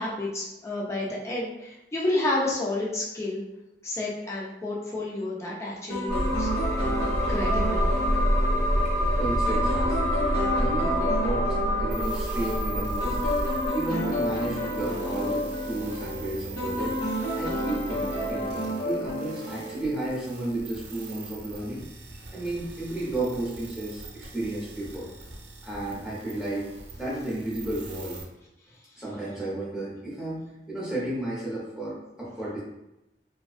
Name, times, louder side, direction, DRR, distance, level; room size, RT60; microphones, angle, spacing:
voice 1, 0.0-3.4 3.8-6.5 7.3-7.9, left 2 dB, 15° left, -4 dB, 0.4 m, -30 dB
sound 1, 5.9-20.1, equal, 60° left, 1.0 m, -31 dB
sound 2, 6.1-13.7, equal, 40° left, 1.2 m, -26 dB
voice 2, 8.8-10.3 10.6-13.2 13.7-17.0 17.3-21.8 22.3-25.1 25.6-26.7 27.0-28.2 28.9-32.6, right 1 dB, 5° right, -8 dB, 0.8 m, -33 dB
sound 3, 11.9-28.2, right 3 dB, 85° right, 0.5 m, -43 dB
2.4 x 2.2 x 2.4 m, 0.90 s
head